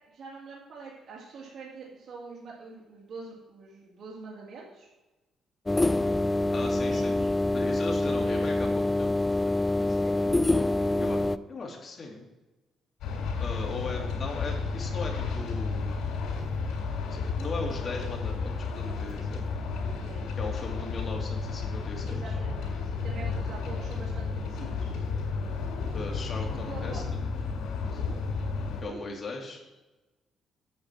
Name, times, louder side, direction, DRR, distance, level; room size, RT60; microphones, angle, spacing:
voice 1, 0.1-4.9 6.7-7.3 8.0-8.5 9.7-10.4 10.6-11.3 14.1-14.6 20.0-20.8 22.0-24.9 26.6-27.0 28.5-29.1, right 4 dB, 55° right, -4 dB, 2.3 m, -45 dB
sound 1, 5.7-11.4, left 2 dB, 15° left, 0.3 m, -26 dB
voice 2, 6.5-7.2 7.5-9.5 11.0-11.2 11.5-12.2 13.4-15.9 17.2-19.4 20.4-22.3 25.9-27.2 27.8-28.1 28.8-29.6, left 3 dB, 40° left, 0 dB, 2.4 m, -38 dB
sound 2, 13.0-28.8, left 4 dB, 90° left, 3.4 m, -32 dB
8.8 x 4.9 x 7.6 m, 1.1 s
cardioid pair, 120°, 0 cm